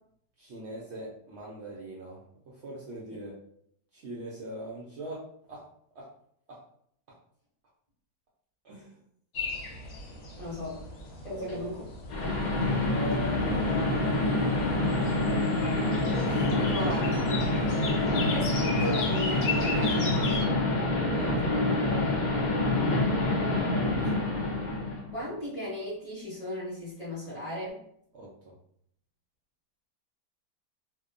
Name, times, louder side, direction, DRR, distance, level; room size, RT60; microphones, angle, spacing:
voice 1, 0.4-2.2 2.5-3.3 3.9-5.6 5.9-6.1 6.5-6.6 8.6-9.0 11.3-11.7 13.7-13.9 14.5-14.7 17.6-17.8 21.1-22.2 28.1-28.3, right 1 dB, 90° right, -5 dB, 0.6 m, -42 dB
sound 1, 9.3-20.5, left 3 dB, 65° left, 0.9 m, -38 dB
voice 2, 10.4-10.8 11.2-11.8 12.2-12.4 16.2-17.3 18.3-20.0 25.1-27.8, equal, 30° left, -9 dB, 0.9 m, -36 dB
sound 2, 11.5-11.6 12.1-25.1, left 2 dB, 85° left, 0.4 m, -26 dB
2.8 x 2.1 x 2.4 m, 0.69 s
omnidirectional pair, 1.8 m